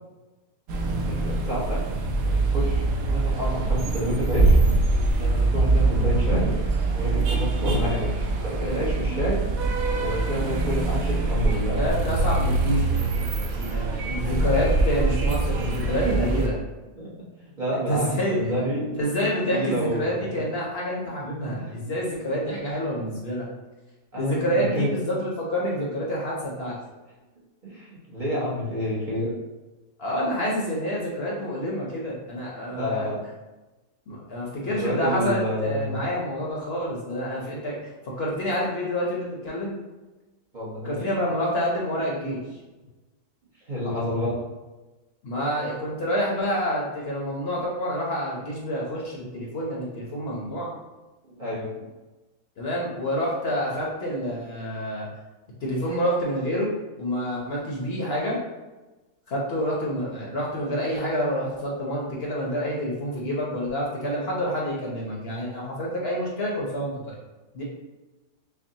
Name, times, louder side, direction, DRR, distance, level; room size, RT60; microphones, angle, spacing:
sound 1, 0.7-16.5, right 2 dB, 75° right, 1.0 m, -23 dB
voice 1, 1.0-1.8 2.2-4.6 5.1-6.6 6.9-9.4 10.0-11.8 14.4-14.5 15.7-16.2 16.9-18.8 19.5-20.4 21.5-21.7 24.1-24.9 27.6-29.3 32.7-33.2 34.6-36.0 40.5-41.0 43.7-44.3 51.4-51.8, equal, 40° right, -8 dB, 0.8 m, -29 dB
voice 2, 11.7-16.5 17.9-18.4 19.0-23.5 24.1-26.7 30.0-33.1 34.1-37.8 38.2-39.7 40.8-42.4 45.2-50.7 52.6-55.1 55.6-56.7 57.0-58.4 59.3-67.2 67.5-67.6, equal, 55° left, -4 dB, 0.9 m, -28 dB
5.9 x 2.1 x 2.7 m, 1.1 s
omnidirectional pair, 1.5 m